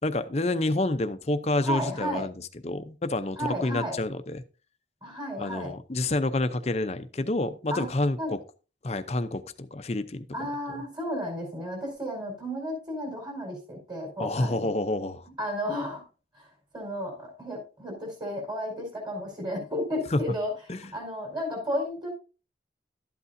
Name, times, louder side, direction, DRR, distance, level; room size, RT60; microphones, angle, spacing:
voice 1, 0.0-2.3 2.6-4.4 5.4-8.4 8.8-10.3 10.7-10.8 14.2-15.3 20.1-20.2 20.7-20.8, left 2 dB, 35° left, 10 dB, 0.6 m, -28 dB
voice 2, 1.6-2.2 3.4-4.0 5.0-5.7 7.7-7.9 8.2-8.3 10.3-14.7 15.3-16.0 16.3-16.5 16.7-20.5 20.9-22.1, equal, 25° right, 1 dB, 4.6 m, -33 dB
12.5 x 8.3 x 2.7 m, 0.34 s
head